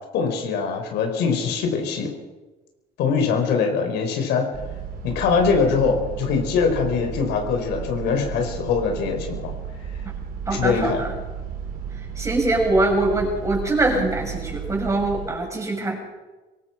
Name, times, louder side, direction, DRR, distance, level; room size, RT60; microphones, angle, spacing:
voice 1, 0.1-2.1 3.0-4.5 5.0-9.5 10.5-11.0, left 5 dB, 80° left, 4 dB, 4.9 m, -22 dB
sound 1, 4.5-15.3, right 7 dB, 60° right, 4.1 m, -33 dB
voice 2, 10.5-11.1 12.2-16.0, right 2 dB, 20° right, 1 dB, 6.9 m, -23 dB
23.5 x 19.0 x 6.0 m, 1.2 s
cardioid pair, 110°, 17 cm